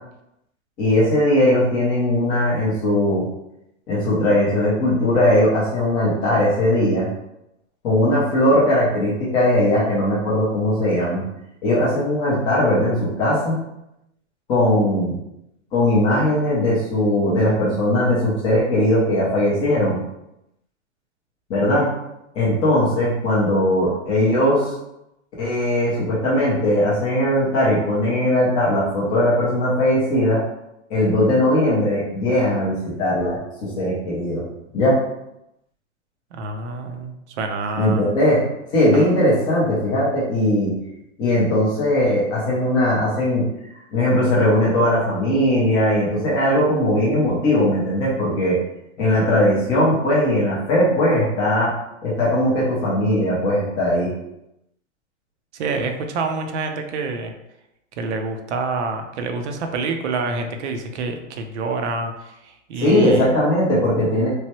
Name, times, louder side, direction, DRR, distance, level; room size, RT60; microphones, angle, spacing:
voice 1, 0.8-3.2 3.9-7.1 7.8-11.2 11.6-13.6 14.5-15.2 15.7-20.0 21.5-21.9 22.3-24.7 25.4-30.4 30.9-34.4 34.7-35.0 37.8-38.4 38.7-40.7 41.2-43.4 43.9-48.6 49.0-51.7 52.0-54.1 62.8-64.3, left 1 dB, 15° left, -6 dB, 0.4 m, -19 dB
voice 2, 36.3-38.1 38.9-39.1 55.5-57.3 58.0-63.3, right 3 dB, 60° right, 5 dB, 0.5 m, -27 dB
3.1 x 2.2 x 2.8 m, 0.85 s
hypercardioid pair, 145°, 40 cm